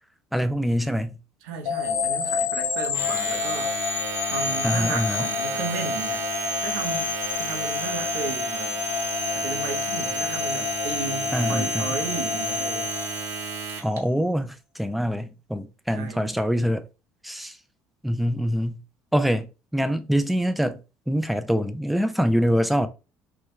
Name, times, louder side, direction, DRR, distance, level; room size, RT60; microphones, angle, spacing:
voice 1, 0.3-1.2 4.6-5.3 11.3-12.0 13.8-16.8 17.2-17.6 18.0-18.8 19.1-20.8 21.1-22.9, equal, ahead, 0.3 m, -24 dB
voice 2, 1.4-3.7 4.3-6.3 6.6-8.8 9.3-12.9 15.9-16.3, right 6 dB, 90° right, 0.8 m, -34 dB
sound 1, 1.6-13.8, left 5 dB, 85° left, 0.8 m, -28 dB
Domestic sounds home sounds, 2.8-14.0, right 6 dB, 50° right, 0.9 m, -33 dB
3.4 x 2.2 x 3.1 m
cardioid pair, 110°, 6 cm